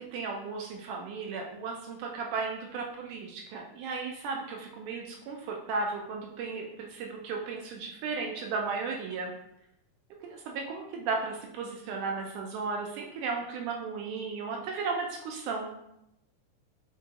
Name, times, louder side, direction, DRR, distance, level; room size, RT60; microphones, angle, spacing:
voice 1, 0.0-9.3 10.2-15.7, right 4 dB, 80° right, 0 dB, 1.9 m, -35 dB
5.3 x 2.6 x 2.5 m, 0.81 s
omnidirectional pair, 3.8 m